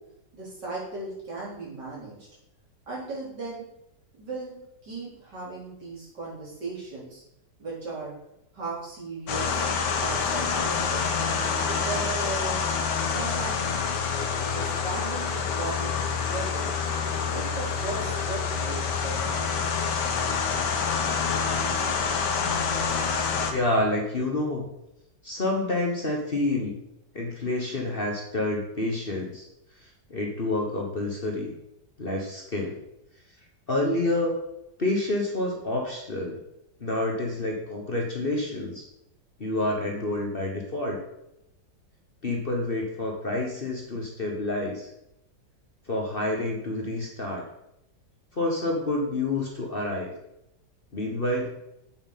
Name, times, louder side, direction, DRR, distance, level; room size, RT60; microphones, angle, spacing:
voice 1, 0.3-2.1 2.9-3.7 4.2-7.2 7.6-8.1 8.5-9.6 10.0-11.0 11.6-12.7 13.1-13.8 14.4-16.7 17.3-19.7, right 3 dB, 70° right, -6 dB, 4.4 m, -37 dB
sound 1, 9.3-23.5, left 5 dB, 70° left, 1.6 m, -27 dB
voice 2, 23.1-24.7 25.2-26.8 27.1-29.5 29.8-31.5 32.0-32.8 33.7-34.4 34.8-36.4 36.8-38.9 39.4-41.0 42.2-44.9 45.9-47.4 48.3-50.1 50.9-51.5, left 2 dB, 35° left, 0 dB, 1.3 m, -28 dB
8.3 x 7.8 x 4.1 m, 0.83 s
omnidirectional pair, 1.9 m